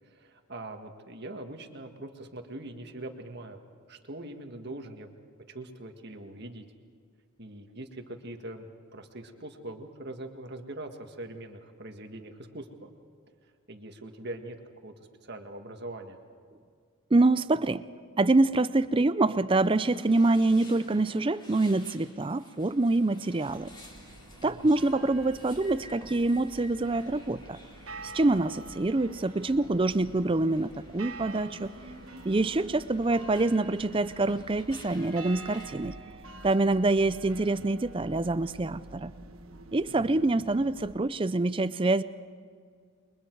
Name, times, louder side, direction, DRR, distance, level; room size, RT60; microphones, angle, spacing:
voice 1, 0.0-3.6 3.9-5.1 5.5-6.7 7.4-12.9 13.7-14.6 14.8-16.2 24.4-24.7 39.9-40.4, right 1 dB, 50° right, 5 dB, 1.8 m, -42 dB
voice 2, 17.1-17.8 18.2-23.7 24.4-27.6 28.0-31.7 32.3-35.9 36.4-39.1 39.7-42.0, right 2 dB, 25° right, 15 dB, 0.4 m, -25 dB
sound 1, 19.6-35.8, left 1 dB, 20° left, 3.5 m, -53 dB
sound 2, 23.5-41.0, right 2 dB, 70° right, 1.5 m, -47 dB
29.0 x 23.0 x 4.7 m, 2.1 s
head